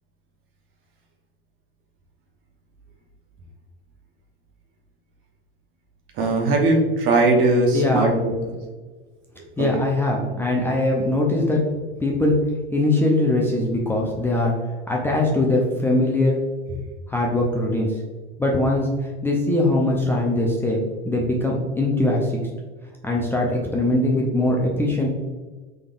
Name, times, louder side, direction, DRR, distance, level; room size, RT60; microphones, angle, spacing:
voice 1, 6.2-8.3 9.6-9.7, right 2 dB, 45° right, 1 dB, 1.0 m, -19 dB
voice 2, 7.7-8.2 9.6-11.6 12.0-12.4 12.7-14.5 14.9-16.4 17.1-17.9 18.4-18.9 19.2-22.4 23.0-25.1, left 2 dB, 10° left, -2 dB, 0.5 m, -21 dB
3.9 x 3.3 x 2.5 m, 1.3 s
hypercardioid pair, 95°, 29 cm